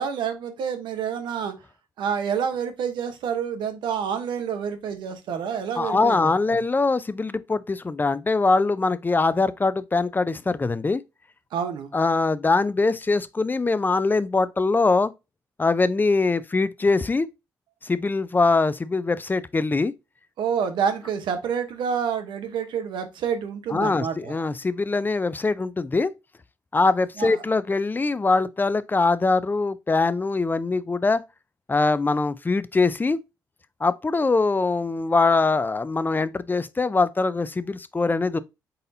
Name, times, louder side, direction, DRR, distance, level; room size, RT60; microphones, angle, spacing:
voice 1, 0.0-1.5 2.0-6.6 11.5-11.9 20.4-24.3 27.2-27.4, right 7 dB, 75° right, 0.8 m, -28 dB
voice 2, 5.8-11.0 11.9-15.1 15.6-17.3 17.8-19.9 23.7-26.1 26.7-31.2 31.7-33.2 33.8-38.4, left 3 dB, 25° left, 0.4 m, -22 dB
4.1 x 4.0 x 2.7 m
supercardioid pair, 55°, 8 cm